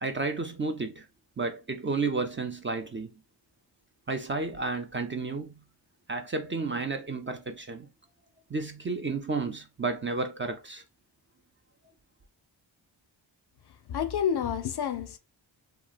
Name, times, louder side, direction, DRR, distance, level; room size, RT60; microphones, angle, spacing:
voice 1, 0.0-1.1 1.4-3.1 4.1-5.6 6.1-7.9 8.5-10.8, right 3 dB, 25° right, 0.4 m, -32 dB
voice 2, 13.9-15.2, left 8 dB, 60° left, 0.5 m, -29 dB
2.9 x 2.4 x 2.3 m
wide cardioid pair, 80°, 46 cm